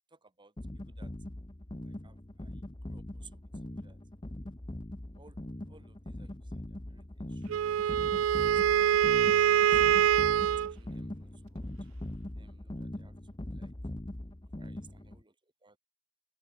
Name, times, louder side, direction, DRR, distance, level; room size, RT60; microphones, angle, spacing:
voice 1, 0.1-0.5 0.9-1.1 1.8-3.5 3.7-4.0 5.1-5.4 5.7-6.6 6.9-7.8 8.6-9.8 10.6-11.7 12.2-13.7 14.6-15.3 15.6-15.8, right 4 dB, 25° right, 2.3 m, -61 dB
sound 1, 0.6-15.2, left 1 dB, 25° left, 1.1 m, -41 dB
Wind instrument woodwind instrument, 7.5-10.7, right 10 dB, 85° right, 0.3 m, -24 dB
open air
head